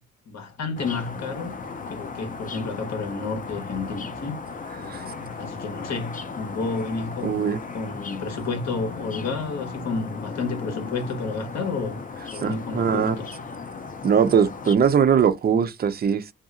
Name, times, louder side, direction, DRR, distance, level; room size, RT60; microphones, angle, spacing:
voice 1, 0.3-1.5 1.9-4.4 4.8-12.0 12.3-13.3, left 4 dB, 60° left, 1.3 m, -31 dB
sound 1, 0.8-14.8, left 5 dB, 25° left, 0.6 m, -36 dB
voice 2, 7.2-7.6 12.4-13.1 14.0-16.3, right 7 dB, 30° right, 0.5 m, -21 dB
2.8 x 2.5 x 2.5 m
cardioid pair, 90°, 30 cm